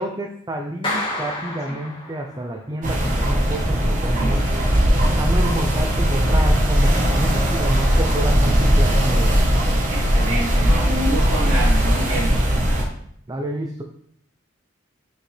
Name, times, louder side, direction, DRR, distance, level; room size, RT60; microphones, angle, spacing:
voice 1, 0.0-4.5 5.2-9.4 13.3-13.8, right 1 dB, 20° right, 2 dB, 0.5 m, -29 dB
Clapping, 0.8-2.6, left 1 dB, 25° left, 1.6 m, -29 dB
sound 1, 2.8-12.8, equal, 40° right, 1.2 m, -19 dB
voice 2, 4.1-4.6 9.9-12.4, right 1 dB, 70° right, -10 dB, 2.7 m, -28 dB
6.2 x 5.3 x 3.3 m, 0.68 s
head